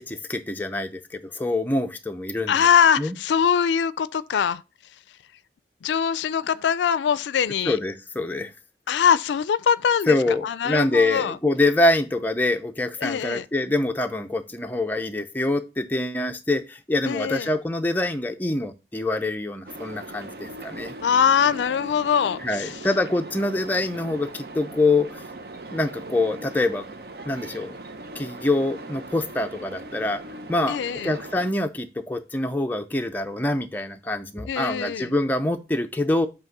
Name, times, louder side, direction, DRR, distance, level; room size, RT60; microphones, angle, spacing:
voice 1, 0.0-2.6 3.0-3.1 7.7-8.5 10.1-20.9 22.4-25.2 25.7-26.9 27.2-27.8 28.2-30.2 30.5-30.8 31.0-36.3, left 2 dB, 10° left, 0.5 m, -25 dB
voice 2, 2.5-4.6 5.8-7.8 8.9-10.2 10.4-11.4 13.0-13.4 17.1-17.5 21.0-22.8 30.7-31.1 34.5-35.1, left 7 dB, 85° left, 0.3 m, -22 dB
sound 1, 19.7-31.5, right 2 dB, 60° right, 0.7 m, -39 dB
7.5 x 2.9 x 4.6 m
head